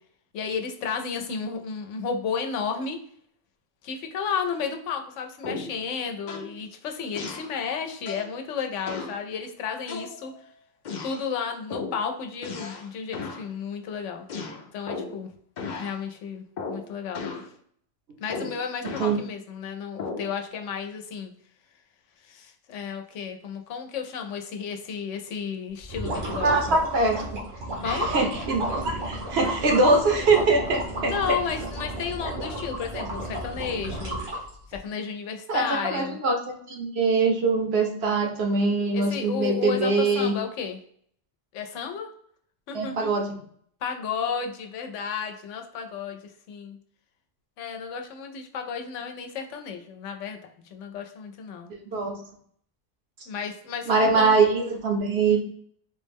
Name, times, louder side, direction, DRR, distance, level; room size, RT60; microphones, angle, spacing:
voice 1, 0.3-3.0 3.8-10.3 11.0-14.3 14.7-15.3 15.8-17.2 18.2-21.3 22.2-26.5 27.8-28.1 31.1-34.1 34.7-36.2 38.9-40.8 41.5-42.1 42.7-43.1 43.8-46.8 47.6-50.4 50.7-51.7 53.3-54.3, left 6 dB, 80° left, 5 dB, 0.9 m, -32 dB
sound 1, 5.4-5.8 6.3-6.5 7.1-7.5 8.1-8.3 8.9-9.2 9.9-10.4 10.8-11.2 11.7-12.0 12.4-12.9 13.1-13.5 14.3-15.2 15.6-16.0 16.6-16.9 17.1-17.5 18.3-19.2 20.0-20.3, left 4 dB, 55° left, 0.5 m, -35 dB
sound 2, 25.8-34.8, right 1 dB, 85° right, 1.5 m, -33 dB
voice 2, 26.4-27.2 27.8-31.4 35.5-40.3 42.7-43.3 51.9-52.2 53.9-55.4, right 3 dB, 65° right, 2 dB, 0.9 m, -23 dB
3.9 x 2.1 x 3.3 m, 0.63 s
omnidirectional pair, 1.2 m